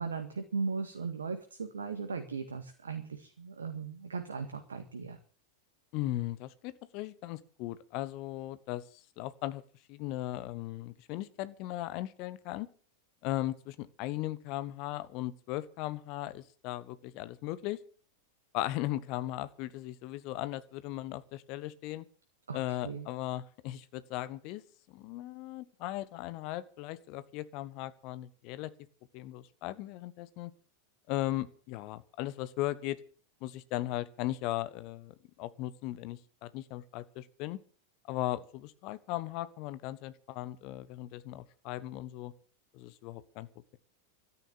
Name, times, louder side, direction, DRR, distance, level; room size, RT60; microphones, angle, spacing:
voice 1, 0.0-5.2 22.5-23.1, right 5 dB, 70° right, 7 dB, 1.9 m, -37 dB
voice 2, 5.9-9.6 9.9-12.7 13.2-17.8 18.5-22.0 22.5-24.6 24.9-28.7 29.1-30.5 31.1-33.0 33.4-37.6 38.1-42.3 42.7-43.5, left 15 dB, 45° left, 15 dB, 1.2 m, -37 dB
13.5 x 10.5 x 8.8 m, 0.42 s
figure-of-eight pair, 90°, 0 cm